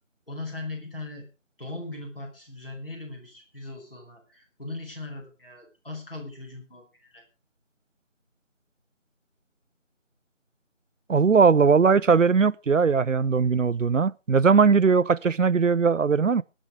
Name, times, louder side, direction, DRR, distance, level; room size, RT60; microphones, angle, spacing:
voice 1, 0.3-1.3 1.6-7.2, left 2 dB, 45° left, 5.3 m, -39 dB
voice 2, 11.1-16.4, right 5 dB, 80° right, 0.6 m, -20 dB
21.0 x 7.2 x 5.1 m
figure-of-eight pair, 180°, 37 cm